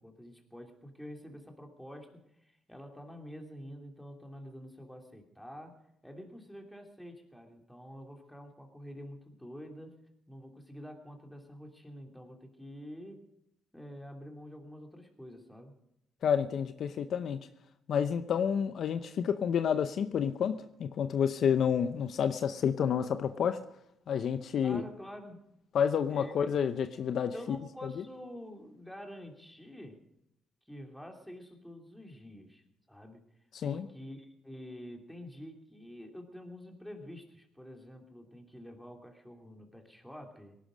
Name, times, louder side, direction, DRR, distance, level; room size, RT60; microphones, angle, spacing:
voice 1, 0.0-10.0 10.3-13.3 13.7-15.8 24.6-25.4 26.1-26.5 27.3-30.0 30.7-32.6 32.9-33.3 33.6-40.6, equal, 5° left, 3 dB, 2.9 m, -48 dB
voice 2, 16.2-17.4 17.9-23.6 24.1-24.8 25.7-27.6 27.8-28.0 33.5-33.9, left 8 dB, 65° left, 10 dB, 0.7 m, -29 dB
18.5 x 11.5 x 5.1 m, 0.78 s
cardioid pair, 80°, 0 cm